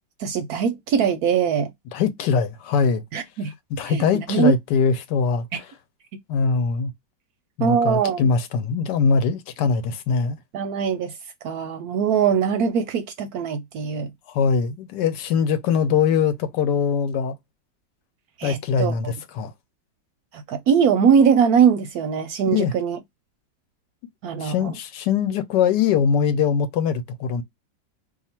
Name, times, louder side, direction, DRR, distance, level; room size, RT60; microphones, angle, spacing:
voice 1, 0.2-1.7 3.1-3.5 3.8-4.5 5.5-5.6 7.6-8.3 10.5-11.1 11.4-14.1 18.4-19.1 20.3-23.0 24.2-24.7, right 7 dB, 70° right, 0.9 m, -21 dB
voice 2, 1.9-3.0 3.7-5.7 6.3-6.9 7.6-10.4 14.3-17.4 18.4-19.5 22.5-22.7 24.4-27.4, left 6 dB, 75° left, 1.2 m, -22 dB
2.8 x 2.4 x 4.2 m
omnidirectional pair, 1.9 m